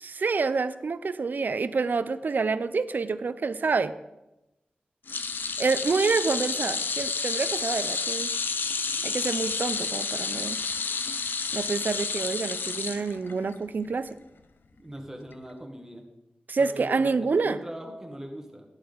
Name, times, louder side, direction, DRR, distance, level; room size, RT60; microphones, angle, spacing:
voice 1, 0.0-3.9 5.6-8.3 9.0-10.6 11.5-14.2 16.5-17.6, right 4 dB, 65° right, 14 dB, 0.5 m, -27 dB
sound 1, 5.1-13.5 13.9-14.1 15.3-15.4, left 5 dB, 80° left, 0.6 m, -30 dB
voice 2, 14.7-16.0 16.6-18.7, right 1 dB, 15° right, 2 dB, 1.7 m, -40 dB
11.0 x 9.7 x 4.0 m, 0.95 s
wide cardioid pair, 110°, 3 cm